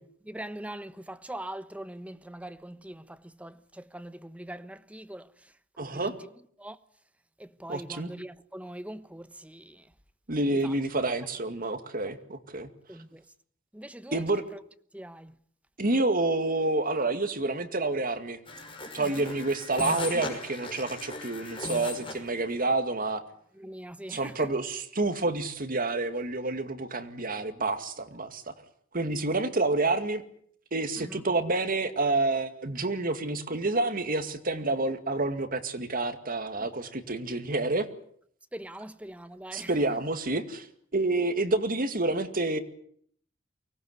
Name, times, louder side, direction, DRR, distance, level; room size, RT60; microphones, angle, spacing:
voice 1, 0.3-0.9 1.3-2.9 3.4-3.5 3.9-5.2 6.6-6.7 7.6-9.2 12.9-13.0 13.8-14.1 14.9-15.1 23.6-24.2 38.5-39.7, right 1 dB, 5° right, 1.1 m, -41 dB
voice 2, 5.8-6.1 7.7-8.1 10.3-12.7 14.1-14.4 15.8-18.4 18.9-23.2 24.1-28.4 28.9-30.2 30.7-37.9 39.5-40.7 40.9-42.6, right 2 dB, 45° right, 2.2 m, -28 dB
sound 1, 18.5-22.3, left 2 dB, 25° left, 5.7 m, -37 dB
24.0 x 19.0 x 9.6 m
head